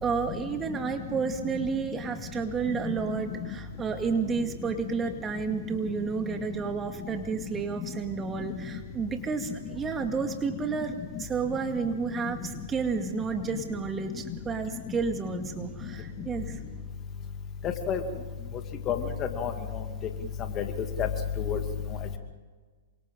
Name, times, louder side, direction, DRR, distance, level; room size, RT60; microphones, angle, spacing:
voice 1, 0.0-16.6, right 5 dB, 20° right, 5 dB, 2.1 m, -31 dB
voice 2, 17.6-18.0 18.9-19.5 20.6-20.7 21.0-21.1 21.4-21.6, left 8 dB, 30° left, 5 dB, 2.5 m, -29 dB
28.0 x 25.5 x 4.0 m, 1.4 s
hypercardioid pair, 115°, 0 cm